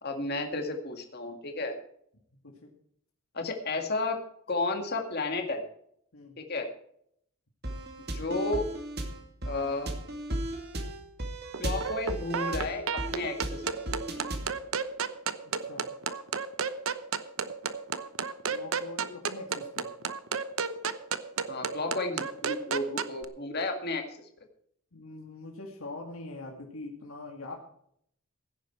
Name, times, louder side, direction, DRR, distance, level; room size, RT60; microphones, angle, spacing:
voice 1, 0.0-1.8 3.3-4.2 4.5-5.6 6.4-6.7 8.1-8.7 9.5-9.9 11.6-13.6 21.5-24.2, left 2 dB, 45° left, 4 dB, 2.0 m, -32 dB
sound 1, 7.6-14.6, right 1 dB, 50° right, 2.3 m, -36 dB
sound 2, 11.5-23.2, right 6 dB, 70° right, 0.9 m, -33 dB
voice 2, 15.4-15.9 18.5-19.9 24.9-27.6, left 2 dB, 80° left, 1 dB, 2.3 m, -43 dB
16.5 x 9.9 x 4.5 m, 0.68 s
head